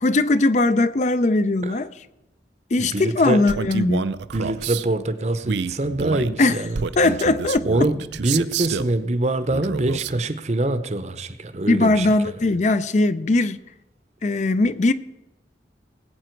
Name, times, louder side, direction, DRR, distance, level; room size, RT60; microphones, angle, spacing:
voice 1, 0.0-1.9 2.7-4.1 6.4-6.6 7.0-7.6 11.7-13.6 14.2-14.9, left 2 dB, 40° left, 0.4 m, -19 dB
voice 2, 2.8-3.4 4.3-6.9 7.6-12.1, right 2 dB, 40° right, 0.7 m, -24 dB
Male speech man speaking, 3.5-4.9 5.4-8.9 9.5-10.2, right 6 dB, 75° right, 0.5 m, -29 dB
19.5 x 8.7 x 4.5 m
head